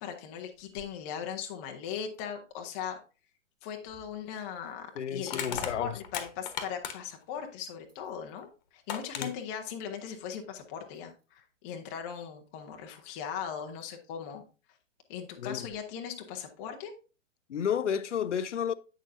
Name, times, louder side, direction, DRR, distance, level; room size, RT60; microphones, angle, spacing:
voice 1, 0.0-3.0 3.6-14.4 15.1-16.9, left 8 dB, 10° left, 0.4 m, -39 dB
sound 1, 0.5-1.0 1.5-1.6 2.1-2.9 5.3-7.3 7.7-8.5 9.1-10.0 10.9-11.5 13.0-13.1 13.6-13.9 14.3-14.4 15.5-15.8, left 2 dB, 80° right, 2.1 m, -53 dB
Crushing, 3.9-4.1 5.3-7.2 8.4-8.5 8.9-9.3, left 8 dB, 35° left, 1.0 m, -36 dB
voice 2, 5.0-6.0 9.2-9.3 15.4-15.7 17.5-18.7, left 8 dB, 70° left, 0.6 m, -31 dB
8.1 x 6.3 x 2.6 m
figure-of-eight pair, 115°, 38 cm